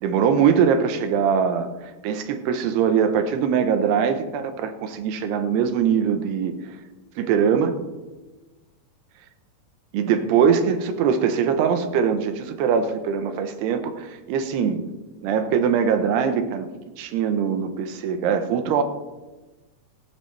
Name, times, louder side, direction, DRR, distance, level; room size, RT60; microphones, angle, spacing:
voice 1, 0.0-6.5 7.2-7.8 9.9-14.8 15.2-16.7 17.0-18.8, right 7 dB, 85° right, 8 dB, 3.1 m, -22 dB
17.0 x 15.0 x 3.3 m, 1.2 s
omnidirectional pair, 4.6 m